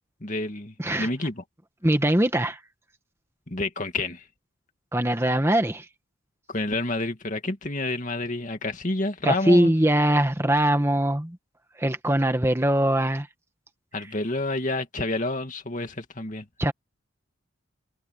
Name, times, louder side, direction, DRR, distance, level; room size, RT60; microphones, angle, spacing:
voice 1, 0.2-1.4 3.5-4.2 6.5-9.7 13.9-16.5, left 2 dB, 40° left, 2.4 m, -29 dB
voice 2, 1.8-2.6 4.9-5.8 9.2-11.4 11.8-13.3 16.6-16.7, right 1 dB, 15° right, 1.5 m, -22 dB
head